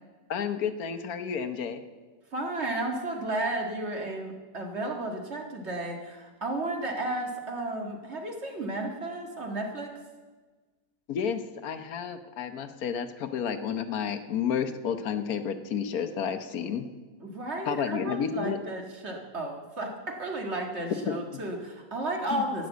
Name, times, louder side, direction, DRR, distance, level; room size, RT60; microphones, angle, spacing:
voice 1, 0.3-1.8 11.1-16.9 17.7-18.6 21.0-21.1 22.3-22.4, left 7 dB, 70° left, 10 dB, 1.3 m, -31 dB
voice 2, 2.3-9.9 17.2-22.7, right 2 dB, 45° right, 2 dB, 2.0 m, -33 dB
11.5 x 9.2 x 7.9 m, 1.3 s
omnidirectional pair, 1.6 m